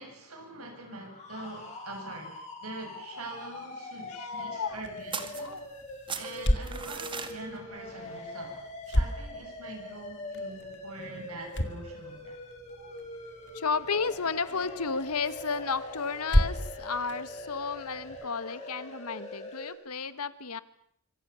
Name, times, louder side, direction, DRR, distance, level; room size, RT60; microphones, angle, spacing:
voice 1, 0.0-5.6 6.2-8.6 8.9-12.4, right 2 dB, 75° right, 2 dB, 7.7 m, -44 dB
sound 1, 0.7-19.7, left 2 dB, 30° left, 7.1 m, -43 dB
voice 2, 4.1-4.8 5.4-5.6 6.9-7.0 12.8-13.0 13.5-20.6, left 5 dB, 85° left, 14 dB, 1.7 m, -33 dB
card flick, 4.7-18.3, equal, 55° left, 2.9 m, -34 dB
Handling a letter, 5.1-5.8 6.1-7.4, right 6 dB, 20° right, 2.2 m, -37 dB
26.5 x 25.5 x 7.1 m, 0.68 s
head